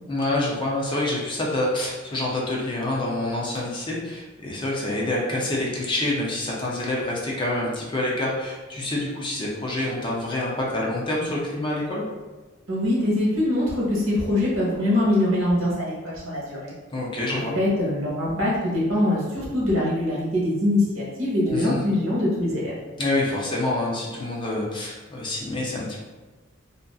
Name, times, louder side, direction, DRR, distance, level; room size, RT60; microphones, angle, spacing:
voice 1, 0.1-12.0 16.9-17.6 21.5-21.8 23.0-26.0, left 1 dB, 25° left, -4 dB, 0.5 m, -27 dB
voice 2, 12.7-16.7 17.3-22.7, left 1 dB, 75° right, -5 dB, 0.9 m, -23 dB
2.5 x 2.4 x 2.3 m, 1.2 s
head